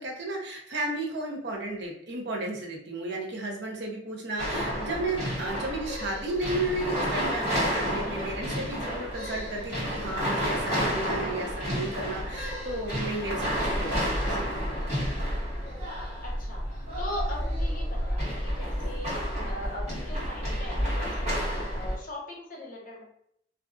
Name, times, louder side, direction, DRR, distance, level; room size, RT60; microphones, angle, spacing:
voice 1, 0.0-14.7, right 2 dB, 70° right, 0 dB, 0.6 m, -33 dB
sound 1, 4.4-21.9, equal, 40° right, 1.3 m, -30 dB
voice 2, 15.0-23.0, left 1 dB, 50° left, -2 dB, 0.7 m, -41 dB
2.4 x 2.2 x 2.4 m, 0.70 s
head